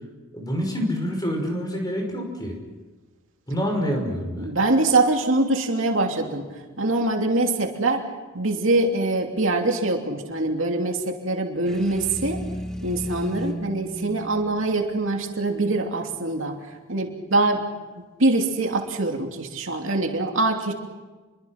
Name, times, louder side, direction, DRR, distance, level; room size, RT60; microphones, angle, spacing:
voice 1, 0.3-2.6 3.5-4.5, equal, 20° left, 2 dB, 5.6 m, -27 dB
voice 2, 4.4-6.4 6.8-8.0 8.3-12.4 12.8-16.6 16.9-17.7 18.2-20.7, right 2 dB, 65° right, 2 dB, 2.9 m, -23 dB
sound 1, 11.6-15.6, equal, 5° left, 1.4 m, -34 dB
29.0 x 24.0 x 6.0 m, 1.3 s
head